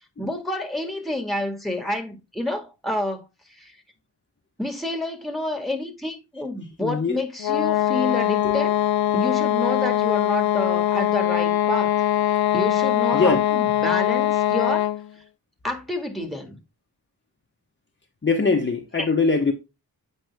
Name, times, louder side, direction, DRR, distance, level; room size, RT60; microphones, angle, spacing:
voice 1, 0.2-3.8 4.6-8.7 9.1-11.9 12.3-14.8 15.6-16.6 19.0-19.1, left 1 dB, ahead, 1.9 m, -29 dB
voice 2, 6.8-7.2 8.4-8.6 13.1-13.4 18.2-19.5, left 4 dB, 30° left, 1.2 m, -22 dB
sound 1, 7.4-15.1, left 12 dB, 70° left, 0.5 m, -22 dB
8.2 x 5.1 x 3.4 m
wide cardioid pair, 95°, 38 cm